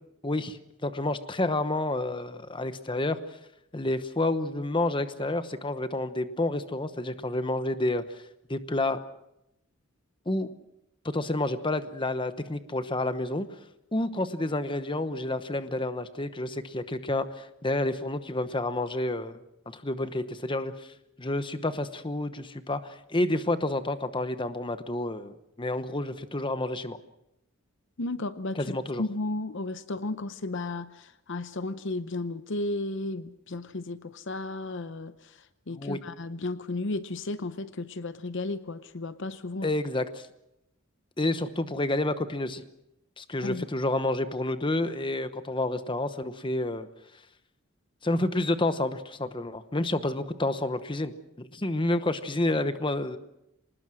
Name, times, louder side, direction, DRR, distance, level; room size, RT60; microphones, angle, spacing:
voice 1, 0.2-3.2 3.7-8.2 8.5-9.0 10.3-10.5 11.0-13.6 13.9-20.9 21.2-27.0 28.5-29.0 35.7-36.0 39.6-40.3 41.2-42.6 43.2-46.9 48.0-51.1 51.4-53.2, left 2 dB, 25° left, 1.0 m, -29 dB
voice 2, 28.0-35.4 35.7-39.7 43.4-43.7, left 2 dB, 60° left, 0.8 m, -34 dB
25.0 x 20.0 x 6.3 m
head